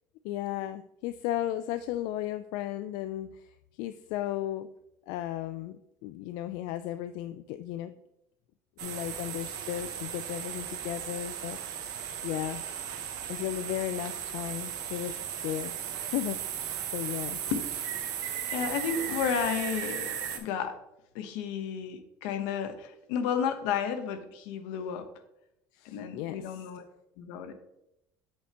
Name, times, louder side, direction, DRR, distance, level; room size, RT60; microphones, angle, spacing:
voice 1, 0.2-4.7 5.1-7.9 8.8-12.6 13.3-16.6 16.9-17.4 25.7-26.7, left 13 dB, 70° left, 12 dB, 0.3 m, -35 dB
sound 1, 8.8-20.4, right 9 dB, 55° right, 1.1 m, -36 dB
voice 2, 18.5-20.7 21.1-25.1 25.8-26.8 27.2-27.5, left 7 dB, 90° left, 9 dB, 0.9 m, -32 dB
7.9 x 6.7 x 2.9 m, 0.84 s
cardioid pair, 160°, 8 cm